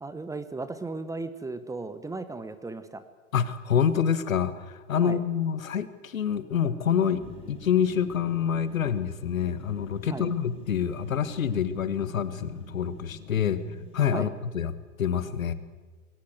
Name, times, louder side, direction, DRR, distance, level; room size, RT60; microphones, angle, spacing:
voice 1, 0.0-3.0 5.0-5.2 10.1-10.3 14.1-14.3, right 3 dB, 10° right, 12 dB, 1.1 m, -35 dB
voice 2, 3.3-13.6 13.9-14.7 15.0-15.5, left 8 dB, 70° left, 14 dB, 1.7 m, -27 dB
sound 1, 7.2-14.0, left 3 dB, 15° left, 6.3 m, -47 dB
21.0 x 18.5 x 8.1 m, 1.3 s
figure-of-eight pair, 105°, 42 cm